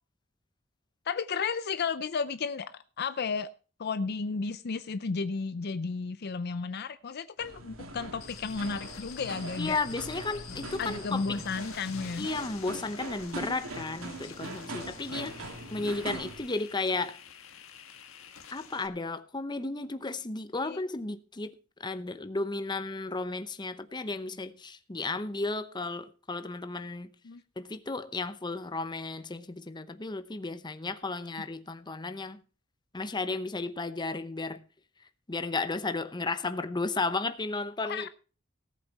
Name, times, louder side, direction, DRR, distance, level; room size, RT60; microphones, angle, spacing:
voice 1, 1.1-3.5 3.8-9.8 10.8-12.3 20.6-20.8 27.2-27.4 31.2-31.3 37.8-38.1, left 5 dB, 50° left, 0.5 m, -33 dB
sound 1, 7.4-16.4, right 2 dB, 85° right, 2.5 m, -42 dB
sound 2, 8.2-18.9, left 9 dB, 80° left, 1.5 m, -49 dB
voice 2, 9.6-11.4 12.2-15.4 15.7-17.2 18.5-21.5 21.8-27.1 27.6-32.4 32.9-34.6 35.3-38.1, left 3 dB, 20° left, 0.8 m, -34 dB
18.0 x 8.0 x 4.1 m
head